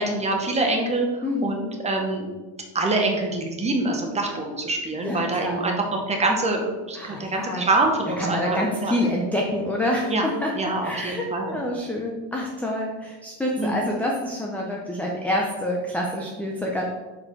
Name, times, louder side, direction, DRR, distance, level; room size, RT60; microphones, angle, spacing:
voice 1, 0.0-2.3 2.7-8.9 10.1-10.3 10.5-11.6 13.6-13.9, right 2 dB, 15° right, 2 dB, 0.8 m, -25 dB
voice 2, 1.2-1.7 5.0-5.8 6.9-7.7 8.2-16.9, left 1 dB, 5° left, -1 dB, 0.4 m, -27 dB
6.4 x 4.5 x 4.4 m, 1.3 s
cardioid pair, 170°, 40 cm